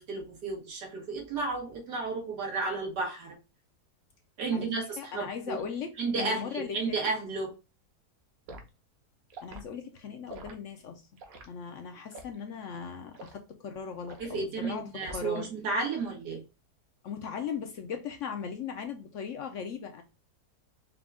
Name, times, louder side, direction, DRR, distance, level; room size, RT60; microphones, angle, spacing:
voice 1, 0.0-3.4 4.4-5.6 6.0-7.5 14.2-16.4, right 3 dB, 90° right, 2.1 m, -33 dB
voice 2, 5.0-7.0 9.4-11.0 11.5-15.5 17.0-20.0, left 6 dB, 65° left, 0.8 m, -38 dB
Liquid, 8.5-8.7 9.3-9.6 10.3-10.6 11.2-11.5 12.1-12.4 13.1-13.4 14.1-14.3 15.0-15.4 15.8-16.1, right 2 dB, 65° right, 1.2 m, -45 dB
4.9 x 2.3 x 3.5 m
omnidirectional pair, 1.7 m